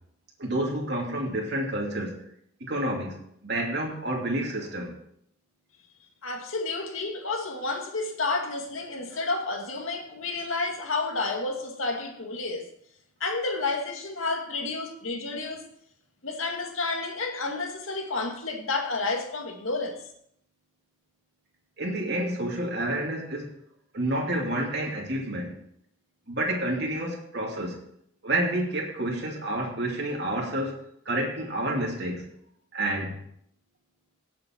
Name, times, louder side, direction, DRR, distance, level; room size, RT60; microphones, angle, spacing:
voice 1, 0.4-2.2 2.6-3.2 3.4-5.0 9.1-9.2 21.8-23.5 23.9-25.6 26.3-27.8 28.2-30.8 31.1-32.3 32.7-33.1, right 1 dB, 55° right, 2.7 m, -29 dB
voice 2, 6.2-12.7 13.2-15.6 16.2-20.0, left 3 dB, 80° left, 2.2 m, -30 dB
17.5 x 7.6 x 4.6 m
head